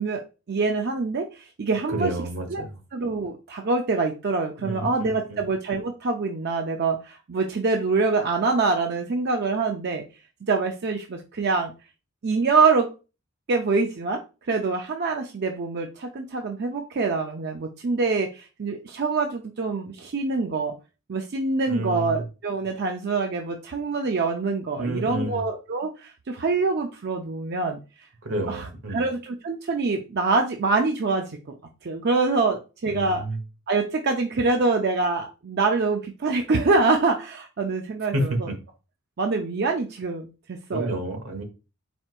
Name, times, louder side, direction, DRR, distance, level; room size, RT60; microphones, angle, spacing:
voice 1, 0.0-2.1 2.5-2.6 2.9-10.0 10.5-11.7 12.2-12.9 13.5-14.2 14.5-20.8 21.1-27.8 28.5-31.4 31.8-33.2 33.7-38.5 39.2-41.0, right 3 dB, 50° right, 3 dB, 0.5 m, -25 dB
voice 2, 1.9-2.8 4.6-5.4 21.7-22.2 24.8-25.4 28.2-29.0 32.9-33.4 38.1-38.6 40.7-41.4, right 1 dB, 80° right, 5 dB, 1.1 m, -29 dB
4.4 x 4.4 x 2.4 m, 0.30 s
head